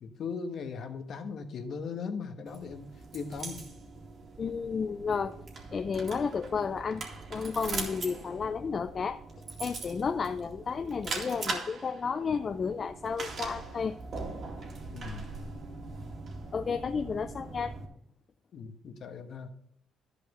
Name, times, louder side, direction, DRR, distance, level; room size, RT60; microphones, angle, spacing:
voice 1, 0.0-2.9 3.1-3.6 14.9-15.2 18.5-19.5, left 5 dB, 60° left, 6 dB, 1.2 m, -38 dB
sound 1, 2.5-17.9, right 3 dB, 55° right, 2.2 m, -41 dB
voice 2, 4.4-5.3 5.7-7.0 7.3-9.2 9.6-14.0 16.5-17.8, left 5 dB, 40° left, 10 dB, 0.4 m, -32 dB
11.5 x 5.1 x 5.4 m, 0.74 s
cardioid pair, 85°, 0 cm